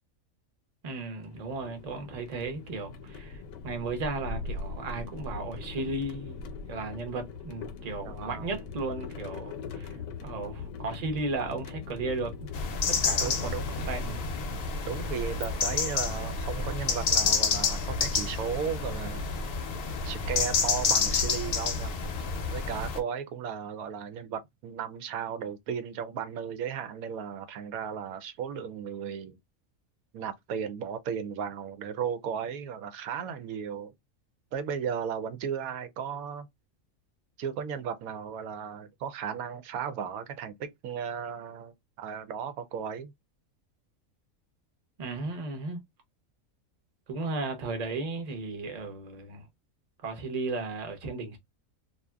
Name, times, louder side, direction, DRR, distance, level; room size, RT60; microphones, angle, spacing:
voice 1, 0.8-12.4 12.9-14.3 45.0-45.8 47.1-49.5 50.0-51.4, right 3 dB, 40° right, 0.7 m, -35 dB
sound 1, 1.3-16.3, left 4 dB, 80° left, 1.0 m, -41 dB
voice 2, 8.0-8.5 13.2-13.7 14.8-19.2 20.0-21.9 22.5-29.4 30.1-33.9 34.5-36.5 37.4-43.1, right 7 dB, 90° right, 1.1 m, -35 dB
sound 2, 12.5-23.0, left 5 dB, 55° left, 0.7 m, -29 dB
2.7 x 2.4 x 2.2 m
omnidirectional pair, 1.5 m